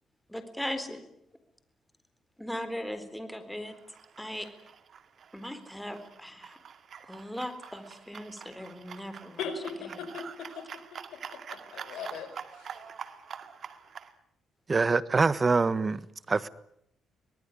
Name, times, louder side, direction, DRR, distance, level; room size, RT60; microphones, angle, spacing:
voice 1, 0.3-1.0 2.4-3.7 4.2-4.5 5.3-6.6 7.0-9.4 9.8-10.1, left 1 dB, 5° left, 3.9 m, -38 dB
sound 1, 3.6-14.1, right 7 dB, 55° right, 2.2 m, -46 dB
voice 2, 9.4-10.2 10.5-10.6 10.9-12.3 12.6-12.7, left 6 dB, 80° left, 5.5 m, -39 dB
voice 3, 14.7-16.0 16.3-16.5, right 4 dB, 30° right, 1.3 m, -24 dB
25.0 x 19.0 x 9.9 m
cardioid pair, 90°, 0 cm